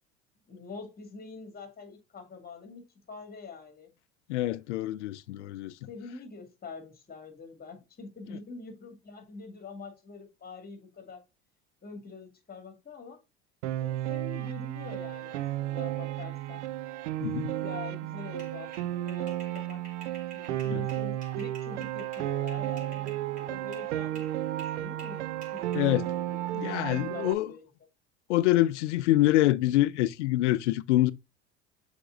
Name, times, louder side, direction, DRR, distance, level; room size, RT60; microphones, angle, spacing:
voice 1, 0.5-3.9 5.9-11.2 11.8-13.2 13.8-16.6 17.6-19.8 20.3-25.2 25.5-26.8 27.1-27.7, left 4 dB, 25° left, 2.4 m, -45 dB
voice 2, 4.3-5.7 17.2-17.5 20.7-20.8 25.7-26.1 26.5-27.5 28.3-31.1, left 16 dB, 75° left, 0.5 m, -25 dB
Piano, 13.6-27.3, right 14 dB, 80° right, 0.6 m, -33 dB
sound 1, 18.4-23.9 24.2-25.8, right 4 dB, 20° right, 4.3 m, -51 dB
6.8 x 4.5 x 3.9 m
hypercardioid pair, 70°, 35 cm